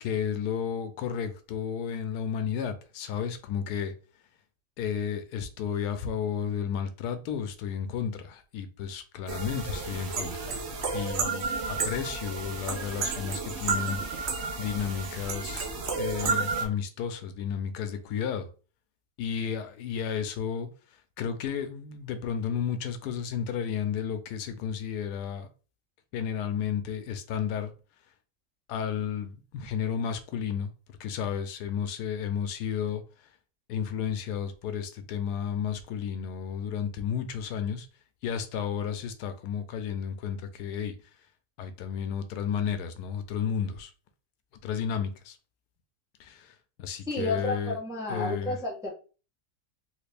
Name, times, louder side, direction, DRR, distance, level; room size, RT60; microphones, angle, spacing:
voice 1, 0.0-3.9 4.8-10.5 10.9-15.7 16.0-18.5 19.2-20.7 21.2-25.5 26.1-27.7 28.7-30.7 31.0-33.0 33.7-37.9 38.2-41.0 41.6-43.9 44.6-45.4 46.2-47.8 48.1-48.6, left 8 dB, 80° left, 1.1 m, -32 dB
sound 1, 9.3-16.6, right 4 dB, 55° right, 0.8 m, -32 dB
voice 2, 47.1-48.9, left 2 dB, 5° right, 0.6 m, -31 dB
3.4 x 2.4 x 3.3 m
omnidirectional pair, 1.7 m